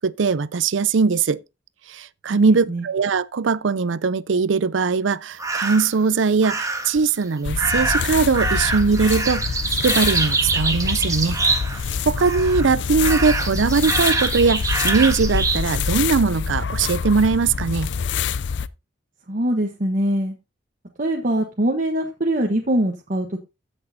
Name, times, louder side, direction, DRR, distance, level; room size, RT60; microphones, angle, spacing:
voice 1, 0.0-1.4 1.9-11.4 12.1-17.9, right 5 dB, 80° right, 0.5 m, -20 dB
voice 2, 2.3-2.8 19.3-20.3 21.0-23.4, right 1 dB, 45° right, 1.2 m, -23 dB
sound 1, 5.4-5.9 6.4-7.0 7.6-11.9 12.2-12.7 13.0-15.7, right 3 dB, 20° right, 1.5 m, -24 dB
sound 2, 7.4-18.7, left 6 dB, 70° left, 0.5 m, -26 dB
15.5 x 6.3 x 2.8 m
head